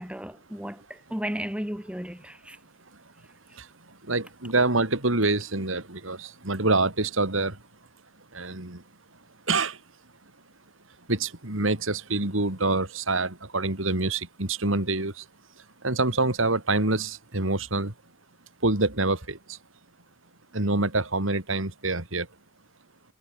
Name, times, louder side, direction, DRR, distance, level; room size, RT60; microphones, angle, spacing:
voice 1, 0.0-2.6, equal, 5° right, 3.6 m, -34 dB
voice 2, 4.0-7.6 8.3-8.8 9.5-9.8 11.1-15.3 15.6-17.9 18.6-19.6 20.5-22.3, right 2 dB, 80° right, 3.8 m, -26 dB
head